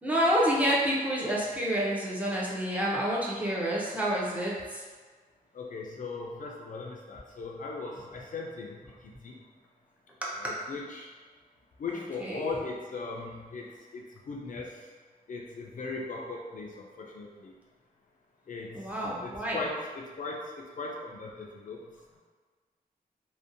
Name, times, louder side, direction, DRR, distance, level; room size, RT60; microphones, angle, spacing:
voice 1, 0.0-4.8 12.2-12.5 18.7-19.6, equal, 10° right, -6 dB, 0.5 m, -28 dB
voice 2, 5.5-9.4 10.4-11.1 11.8-13.7 13.9-14.8 15.3-17.5 18.5-18.8 19.2-21.8, left 3 dB, 55° left, -2 dB, 0.4 m, -38 dB
2.6 x 2.1 x 2.5 m, 1.5 s
wide cardioid pair, 130°, 16 cm